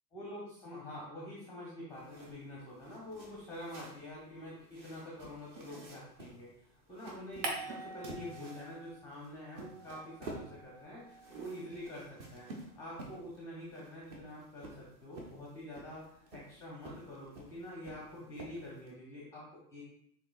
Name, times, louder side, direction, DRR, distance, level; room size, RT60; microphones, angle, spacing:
voice 1, 0.1-19.8, left 1 dB, 5° left, -5 dB, 0.6 m, -46 dB
sound 1, 1.9-18.9, right 2 dB, 30° right, 0.8 m, -52 dB
sound 2, 7.4-9.1 9.4-11.9, right 2 dB, 70° right, 1.1 m, -45 dB
6.5 x 2.8 x 2.4 m, 0.73 s
supercardioid pair, 140°, 49 cm